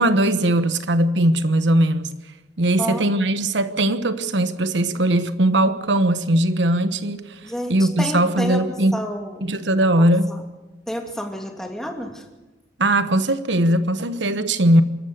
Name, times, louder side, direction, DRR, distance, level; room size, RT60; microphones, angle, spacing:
voice 1, 0.0-2.1 2.6-7.3 7.7-9.0 9.4-10.3 12.8-14.8, right 1 dB, 75° right, 1.2 m, -19 dB
voice 2, 7.4-8.6 8.9-9.5 10.0-10.4 10.9-12.2, equal, 5° left, 2.6 m, -30 dB
25.0 x 13.5 x 8.0 m
head